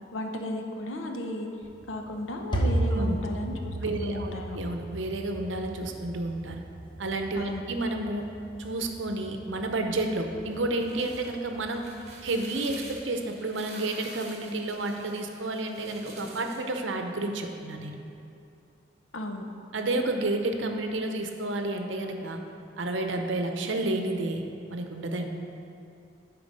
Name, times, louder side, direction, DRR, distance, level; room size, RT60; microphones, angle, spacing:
voice 1, 0.1-1.5 1.9-4.6 7.3-7.7 19.1-19.5, left 1 dB, 85° left, 3 dB, 0.8 m, -34 dB
sound 1, 1.6-13.0, right 1 dB, 25° left, 0.8 m, -35 dB
voice 2, 3.8-6.6 7.0-8.3 8.6-11.8 12.2-18.0 19.7-22.4 22.8-24.4 24.7-25.3, right 2 dB, 70° right, 4 dB, 0.7 m, -30 dB
sound 2, 10.8-16.7, right 3 dB, 35° right, 1.4 m, -48 dB
10.5 x 4.5 x 5.4 m, 2.7 s
head